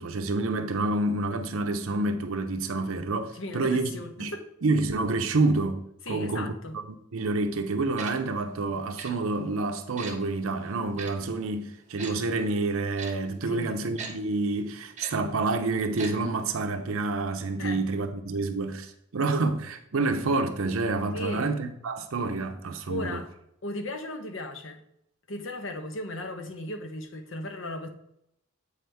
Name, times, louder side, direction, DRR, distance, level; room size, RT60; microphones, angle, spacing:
voice 1, 0.0-3.9 4.2-4.3 4.6-5.8 6.1-6.5 7.1-23.2, right 3 dB, 70° right, 0.6 m, -28 dB
voice 2, 3.3-4.4 6.0-6.8 13.4-13.8 17.6-17.8 21.1-21.5 22.9-23.3 23.6-24.8 25.3-27.9, left 1 dB, 60° left, 0.8 m, -36 dB
Tick-tock, 8.0-8.1 9.0-9.1 10.0-10.1 11.0-11.1 12.0-12.1 13.0-13.1 14.0-14.1 15.0-15.1 16.0-16.1 16.4-16.5, right 5 dB, 30° right, 0.9 m, -38 dB
7.7 x 4.9 x 3.4 m
head